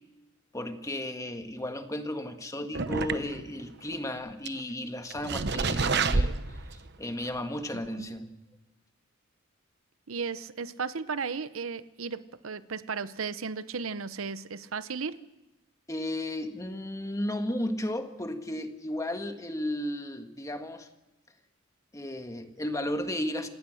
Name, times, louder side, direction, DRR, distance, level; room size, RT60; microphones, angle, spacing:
voice 1, 0.5-6.4 6.7-8.4 15.9-20.9 21.9-23.5, left 1 dB, 15° left, 6 dB, 1.6 m, -34 dB
sound 1, 2.7-3.6 3.9-4.0 4.4-4.5 5.1-6.9 7.2-7.3 7.9-8.0, right 4 dB, 55° right, 1.0 m, -28 dB
voice 2, 7.7-8.1 10.1-15.2, right 5 dB, 80° right, 14 dB, 0.8 m, -35 dB
27.5 x 18.5 x 6.4 m, 1.0 s
head